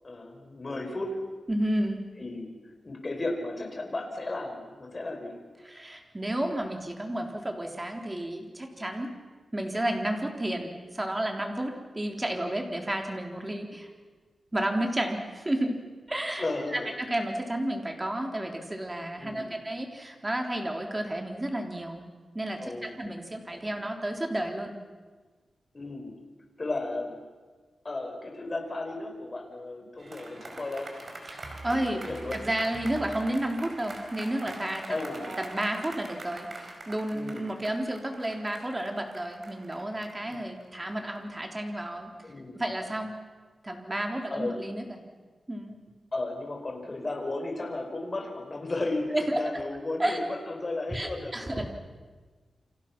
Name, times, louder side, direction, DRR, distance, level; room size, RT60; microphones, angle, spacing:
voice 1, 0.0-1.2 2.2-2.5 2.8-5.4 16.3-16.9 19.2-19.6 22.6-22.9 25.7-26.1 26.6-27.1 27.8-30.9 31.7-32.4 34.9-35.2 37.1-37.5 40.3-40.4 42.2-42.6 44.3-44.6 46.1-51.6, left 2 dB, 30° left, 3 dB, 5.0 m, -34 dB
voice 2, 1.5-2.0 5.6-9.1 9.5-13.9 14.5-15.8 16.1-22.0 22.3-24.7 31.3-32.0 32.3-43.1 43.6-45.0 45.5-45.8 49.1-49.6 50.0-50.2 50.9-51.7, right 1 dB, 15° right, 3 dB, 3.5 m, -32 dB
sound 1, 30.0-41.4, right 2 dB, 45° right, 5.0 m, -43 dB
29.5 x 25.5 x 6.0 m, 1.4 s
wide cardioid pair, 125°, 0 cm